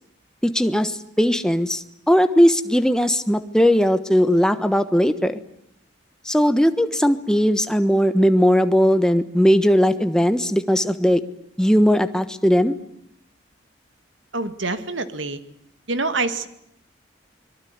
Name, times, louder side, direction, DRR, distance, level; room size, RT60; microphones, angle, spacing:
voice 1, 0.4-5.4 6.2-11.2 11.6-12.7, equal, 5° left, 10 dB, 1.2 m, -18 dB
voice 2, 14.3-15.4 15.9-16.5, right 3 dB, 85° right, 11 dB, 2.2 m, -26 dB
24.5 x 23.0 x 9.6 m, 0.72 s
head